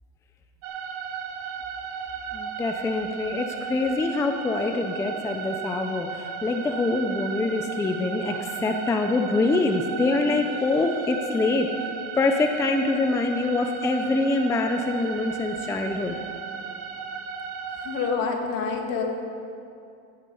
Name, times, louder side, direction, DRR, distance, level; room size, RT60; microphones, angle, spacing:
sound 1, 0.6-18.1, right 6 dB, 90° right, 1.4 m, -35 dB
voice 1, 2.3-11.9 12.1-16.2, left 3 dB, 10° left, 5 dB, 0.4 m, -25 dB
voice 2, 17.8-19.0, left 5 dB, 65° left, 2 dB, 2.1 m, -27 dB
16.5 x 8.6 x 5.4 m, 2.6 s
cardioid pair, 150°, 37 cm